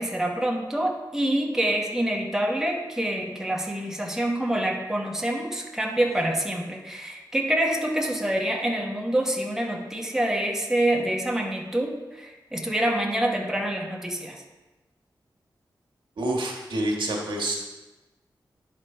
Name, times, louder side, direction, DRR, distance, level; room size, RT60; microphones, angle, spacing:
voice 1, 0.0-14.4, right 1 dB, 5° right, 0 dB, 1.0 m, -26 dB
voice 2, 16.2-17.6, right 1 dB, 90° right, -1 dB, 1.6 m, -27 dB
10.0 x 5.2 x 4.4 m, 1.1 s
wide cardioid pair, 110°, 8 cm